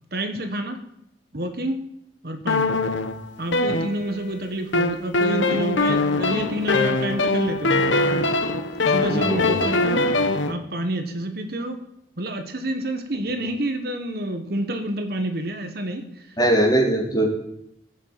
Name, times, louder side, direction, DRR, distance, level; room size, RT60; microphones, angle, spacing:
voice 1, 0.1-0.8 1.3-1.8 2.2-2.7 3.4-7.9 8.9-10.0 10.5-11.8 12.2-16.4 16.7-16.9, right 1 dB, 55° right, 7 dB, 1.4 m, -28 dB
sound 1, 2.5-4.3 4.7-10.5, left 2 dB, 80° left, 1.2 m, -22 dB
voice 2, 9.1-9.7 16.4-17.3, right 1 dB, 20° left, -1 dB, 3.7 m, -21 dB
18.0 x 7.4 x 9.0 m, 0.78 s
head